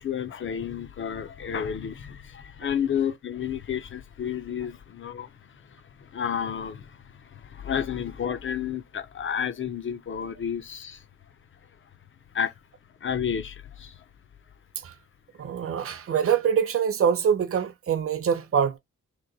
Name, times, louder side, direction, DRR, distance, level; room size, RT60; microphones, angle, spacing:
voice 1, 0.0-5.3 5.6-11.0 12.3-12.5 13.0-14.0, left 8 dB, 40° left, 0.5 m, -31 dB
voice 2, 15.4-18.8, right 7 dB, 50° right, 0.6 m, -24 dB
3.0 x 3.0 x 3.8 m
wide cardioid pair, 175°, 30 cm